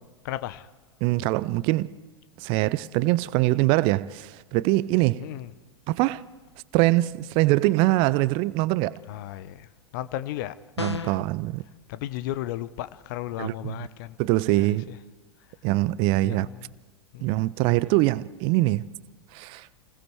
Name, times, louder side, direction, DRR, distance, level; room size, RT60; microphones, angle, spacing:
voice 1, 0.2-0.7 1.1-1.3 5.2-5.5 9.1-10.6 10.9-11.2 11.9-14.2 14.5-15.0 15.4-15.6 16.2-16.7 17.1-17.5, left 14 dB, 50° left, 0.9 m, -35 dB
voice 2, 1.0-1.9 2.4-5.2 5.9-6.2 6.7-9.0 10.8-11.6 13.4-13.7 14.2-14.9 15.6-16.5 17.2-18.9 19.3-19.7, right 18 dB, 40° right, 0.6 m, -23 dB
sound 1, 10.8-11.3, left 4 dB, 90° left, 0.7 m, -31 dB
30.0 x 20.5 x 4.6 m
figure-of-eight pair, 95°, 14 cm